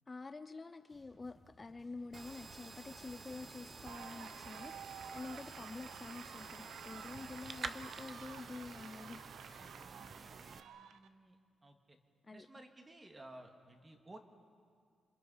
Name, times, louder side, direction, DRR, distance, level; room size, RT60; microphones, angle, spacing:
voice 1, 0.1-9.7 12.3-12.5, left 3 dB, 25° left, 9 dB, 0.5 m, -48 dB
sound 1, 0.8-7.9, left 1 dB, 10° left, 1.9 m, -65 dB
sound 2, 2.1-10.6, right 4 dB, 40° right, 0.9 m, -50 dB
sound 3, 3.9-11.1, right 8 dB, 90° right, 0.8 m, -52 dB
voice 2, 9.6-12.0 12.3-14.2, right 1 dB, 20° right, 4 dB, 2.1 m, -57 dB
27.5 x 26.0 x 5.6 m, 2.2 s
cardioid pair, 115°, 0 cm